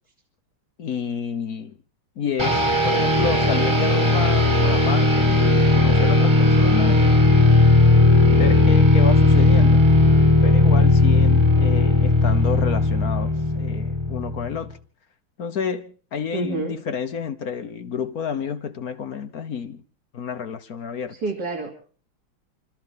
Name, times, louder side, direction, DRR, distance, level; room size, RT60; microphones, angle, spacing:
voice 1, 0.8-1.8 2.2-7.3 8.3-9.8 10.4-14.8 15.4-19.8 20.1-21.2, left 6 dB, 55° left, 1.2 m, -29 dB
sound 1, 2.4-14.6, left 2 dB, 15° right, 2.0 m, -17 dB
voice 2, 16.3-16.7 21.1-21.7, right 3 dB, 50° right, 3.5 m, -28 dB
29.0 x 13.5 x 3.6 m
omnidirectional pair, 2.3 m